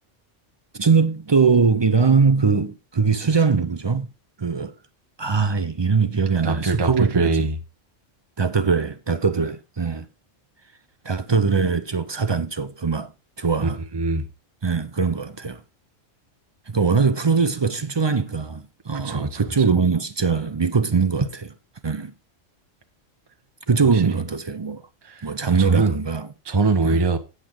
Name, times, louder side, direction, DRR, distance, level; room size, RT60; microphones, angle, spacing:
voice 1, 0.7-4.1 4.4-4.7 5.2-7.5 8.4-10.1 11.0-13.1 13.4-13.8 14.6-15.6 16.7-21.3 21.8-22.1 23.7-24.8 25.2-26.3 26.8-27.0, right 5 dB, 40° right, 0.4 m, -21 dB
voice 2, 6.4-7.6 13.6-14.2 19.0-19.4 23.9-24.0 25.0-25.3 25.6-26.0 26.4-27.2, right 3 dB, 20° right, 0.9 m, -22 dB
8.6 x 8.0 x 3.7 m
omnidirectional pair, 1.3 m